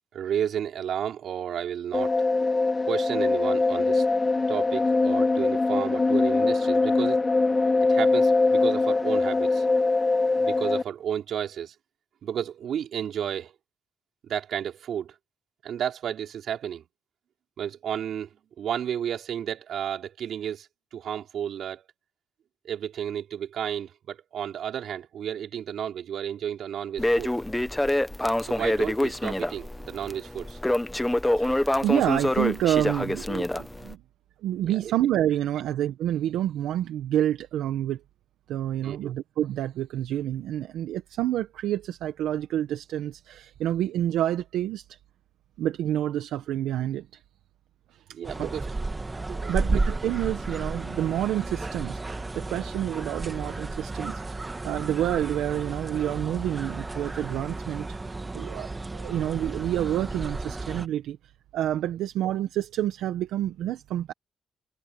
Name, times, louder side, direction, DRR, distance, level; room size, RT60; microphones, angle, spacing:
voice 1, 0.1-2.2 2.8-4.0 4.5-7.2 7.9-9.7 10.4-11.7 12.2-13.5 14.2-15.2 15.6-16.9 17.6-18.3 18.6-21.8 22.6-27.3 28.4-30.6 34.7-34.9 38.8-39.1 48.1-48.8 49.3-49.8, right 9 dB, 65° right, 4.4 m, -32 dB
sound 1, 1.9-10.8, left 3 dB, 25° left, 2.3 m, -22 dB
Crackle, 27.0-33.9, left 1 dB, 10° left, 1.1 m, -26 dB
voice 2, 31.4-34.0 34.4-38.0 38.5-45.0 45.6-47.2 47.9-48.0 48.4-48.5 49.5-61.2 61.5-64.1, right 12 dB, 85° right, 1.3 m, -28 dB
sound 2, 48.2-60.9, right 2 dB, 20° right, 2.2 m, -33 dB
cardioid pair, 90°, 0 cm